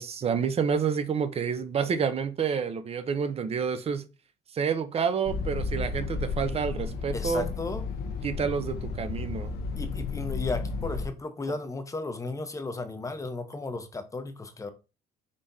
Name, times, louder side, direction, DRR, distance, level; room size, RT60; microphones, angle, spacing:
voice 1, 0.0-4.1 4.5-7.5 8.2-9.5, right 6 dB, 35° right, 0.6 m, -29 dB
sound 1, 5.3-11.1, left 4 dB, 70° left, 0.8 m, -33 dB
voice 2, 7.1-7.8 9.8-14.7, left 3 dB, 20° left, 0.8 m, -34 dB
5.3 x 3.4 x 2.7 m
cardioid pair, 110°, 17 cm